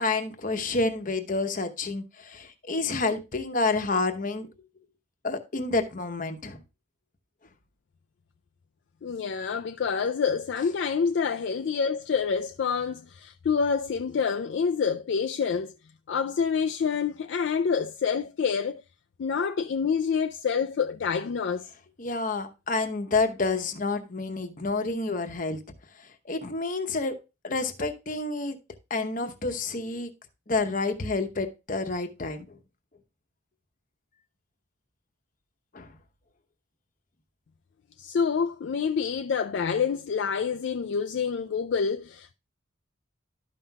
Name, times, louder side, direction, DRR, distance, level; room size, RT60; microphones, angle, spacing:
voice 1, 0.0-4.5 5.2-6.6 22.0-25.6 26.2-27.2 27.4-28.6 28.9-30.1 30.5-32.6 35.7-35.9, left 3 dB, 40° left, 0.9 m, -29 dB
voice 2, 9.0-15.7 16.1-18.8 19.2-21.7 38.0-42.3, left 6 dB, 55° left, 0.3 m, -27 dB
12.0 x 5.6 x 2.2 m
head